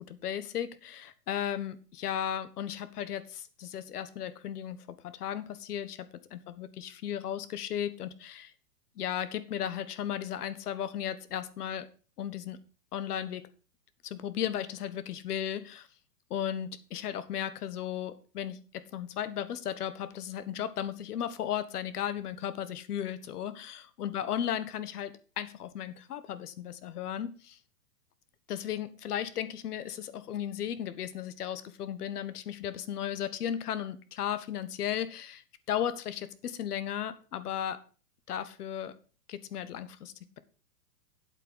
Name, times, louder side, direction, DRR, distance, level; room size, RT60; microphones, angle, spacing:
voice 1, 0.0-8.5 9.0-11.9 12.2-12.6 12.9-13.4 14.0-15.9 16.3-18.6 18.9-27.6 28.5-37.8 38.3-38.9 39.3-40.4, left 10 dB, 70° left, 1.4 m, -35 dB
8.2 x 8.2 x 5.6 m
hypercardioid pair, 140°, 47 cm